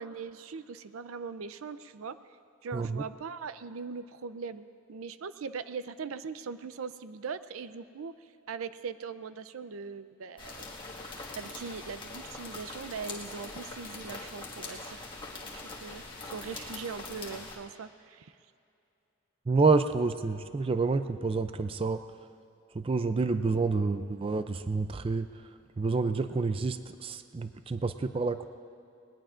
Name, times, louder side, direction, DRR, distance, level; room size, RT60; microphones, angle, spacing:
voice 1, 0.0-2.2 2.6-8.1 8.5-10.7 11.4-15.1 15.6-18.3, right 5 dB, 85° right, 13 dB, 0.5 m, -40 dB
voice 2, 2.7-3.0 19.5-22.0 22.7-25.3 25.8-28.5, right 3 dB, 25° right, 10 dB, 0.4 m, -28 dB
sound 1, 10.4-17.6, left 3 dB, 25° left, 1.7 m, -42 dB
20.0 x 19.5 x 2.5 m, 2.6 s
head